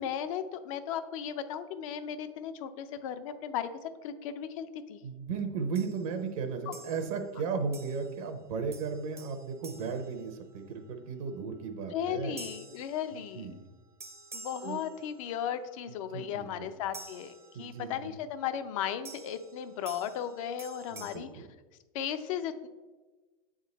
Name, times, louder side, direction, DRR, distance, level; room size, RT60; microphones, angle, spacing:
voice 1, 0.0-5.0 6.7-6.8 11.9-13.5 14.3-21.5 21.9-22.7, left 9 dB, 65° left, 10 dB, 0.6 m, -36 dB
voice 2, 5.0-12.3 13.3-13.6 14.6-14.8 16.1-16.7 17.5-17.9 20.9-21.4, right 5 dB, 70° right, 7 dB, 0.9 m, -35 dB
sound 1, 5.8-6.1 6.7-7.3 7.7-8.3 8.7-10.9 12.4-13.6 14.0-15.5 16.9-18.0 19.1-21.2, right 3 dB, 15° right, 0.5 m, -50 dB
7.4 x 3.7 x 4.1 m, 1.3 s
supercardioid pair, 130°, 18 cm